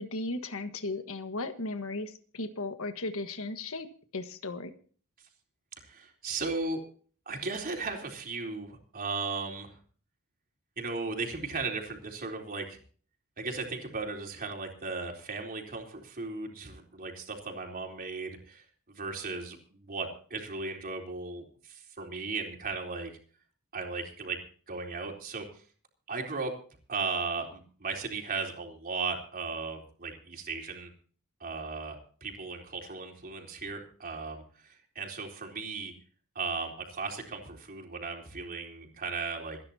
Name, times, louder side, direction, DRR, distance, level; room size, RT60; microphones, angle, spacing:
voice 1, 0.0-3.9 4.1-4.7, left 2 dB, 65° left, 8 dB, 1.5 m, -36 dB
voice 2, 5.8-6.8 7.3-9.8 10.8-12.8 13.4-23.1 23.7-24.4 24.7-25.6 26.1-26.5 26.9-30.9 31.4-35.9 36.4-39.6, right 4 dB, 40° right, 1 dB, 3.8 m, -36 dB
27.5 x 10.5 x 2.9 m, 0.43 s
head